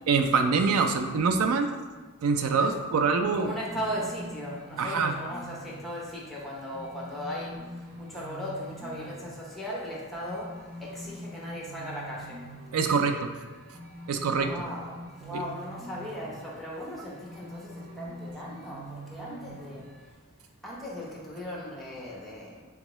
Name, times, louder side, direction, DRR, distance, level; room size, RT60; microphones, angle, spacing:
voice 1, 0.0-1.7 2.2-3.5 4.8-5.1 12.7-13.3 14.1-14.5 15.3-15.4, right 5 dB, 80° right, 6 dB, 0.3 m, -24 dB
voice 2, 2.5-2.8 3.3-12.4 14.3-19.9 20.6-22.6, equal, ahead, -5 dB, 0.8 m, -38 dB
sound 1, 3.3-20.1, right 1 dB, 45° right, 0.7 m, -45 dB
3.6 x 3.5 x 3.0 m, 1.3 s
head